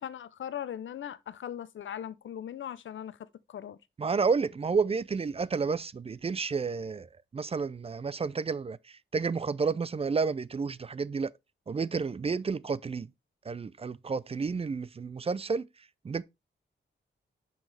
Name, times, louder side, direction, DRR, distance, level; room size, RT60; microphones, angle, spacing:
voice 1, 0.0-3.2 3.5-3.8, left 9 dB, 85° left, 0.6 m, -39 dB
voice 2, 4.0-7.1 7.3-8.8 9.1-11.3 11.7-13.1 13.5-15.7 16.0-16.2, right 5 dB, 30° right, 0.4 m, -30 dB
8.9 x 5.6 x 3.3 m
wide cardioid pair, 100°, 19 cm